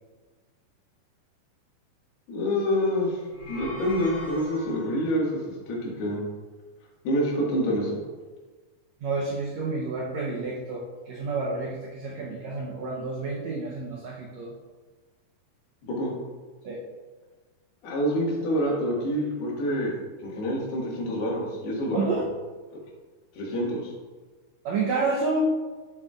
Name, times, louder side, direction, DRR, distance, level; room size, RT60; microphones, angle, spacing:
voice 1, 2.3-3.2 3.5-6.2 7.1-8.0 15.9-16.1 17.8-19.9 20.2-22.1 23.4-23.9, equal, 90° left, -4 dB, 3.9 m, -27 dB
sound 1, 3.2-5.1, left 1 dB, 35° left, 3.2 m, -40 dB
voice 2, 9.0-14.5 16.6-16.8 21.9-22.3 24.6-25.5, right 3 dB, 90° right, -2 dB, 1.5 m, -29 dB
11.0 x 7.0 x 2.4 m, 1.3 s
omnidirectional pair, 4.4 m